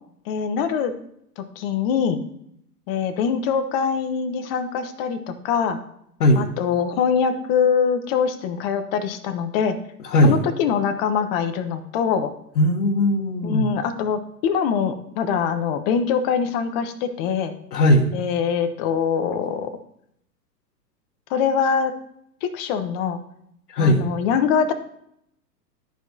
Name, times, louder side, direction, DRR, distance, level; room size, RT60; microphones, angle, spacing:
voice 1, 0.3-0.9 1.4-2.2 2.9-5.8 6.4-9.7 10.2-12.3 13.4-17.5 18.1-19.7 21.3-21.9 22.4-23.2 23.8-24.7, left 7 dB, 35° left, 9 dB, 0.9 m, -23 dB
voice 2, 12.5-13.6 17.7-18.1 23.7-24.0, left 1 dB, 70° left, -5 dB, 1.7 m, -17 dB
12.5 x 4.8 x 2.7 m, 0.72 s
hypercardioid pair, 120°, 50 cm